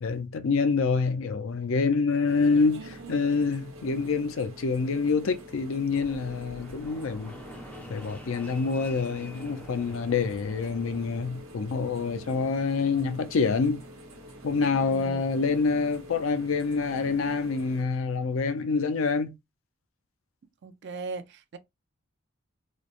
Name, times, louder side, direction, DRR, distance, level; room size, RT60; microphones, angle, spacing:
voice 1, 0.0-7.4 7.9-13.8 14.4-19.4, left 4 dB, 70° left, 0.5 m, -26 dB
sound 1, 2.3-17.8, right 1 dB, 85° right, 0.9 m, -46 dB
voice 2, 2.7-3.1 14.8-15.2 20.6-21.6, right 4 dB, 55° right, 0.4 m, -39 dB
Fixed-wing aircraft airplane, 5.9-11.5, left 1 dB, 10° left, 0.4 m, -48 dB
3.0 x 2.0 x 2.4 m
head